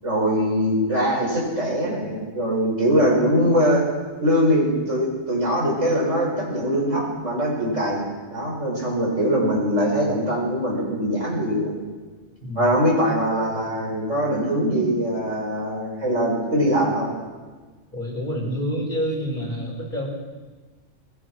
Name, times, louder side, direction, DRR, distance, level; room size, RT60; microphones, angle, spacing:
voice 1, 0.0-3.9 4.2-11.7 12.6-17.1, equal, 80° right, -2 dB, 8.0 m, -22 dB
voice 2, 12.4-12.8 17.9-20.1, equal, 40° left, 0 dB, 5.6 m, -28 dB
22.5 x 22.0 x 6.4 m, 1.4 s
omnidirectional pair, 1.3 m